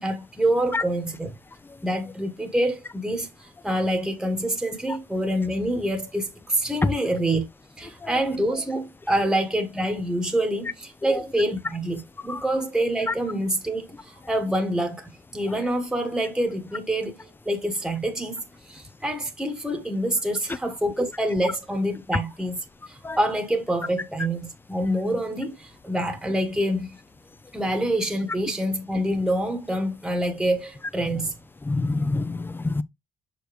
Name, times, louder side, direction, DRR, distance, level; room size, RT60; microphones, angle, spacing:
voice 1, 0.0-1.3 1.8-7.5 7.8-27.0 27.5-31.3, right 1 dB, 5° right, 1.2 m, -26 dB
voice 2, 31.6-32.8, left 3 dB, 10° left, 0.4 m, -26 dB
6.3 x 5.0 x 3.1 m
cardioid pair, 110°, 17 cm